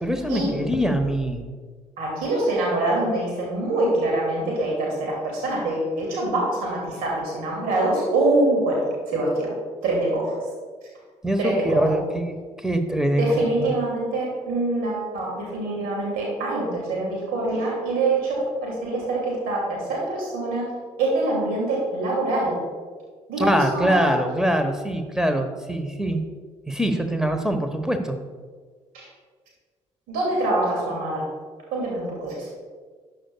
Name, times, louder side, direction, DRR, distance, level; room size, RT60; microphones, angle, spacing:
voice 1, 0.0-1.4 11.2-13.7 23.4-26.2 26.7-28.2, equal, 5° right, 7 dB, 1.3 m, -24 dB
voice 2, 2.0-9.6 9.8-10.4 11.4-12.0 13.2-20.7 21.0-22.6 23.3-24.2 28.9-29.1 30.1-31.2 31.7-32.5, right 2 dB, 65° right, -3 dB, 2.7 m, -24 dB
13.0 x 9.3 x 2.4 m, 1.5 s
figure-of-eight pair, 45°, 17 cm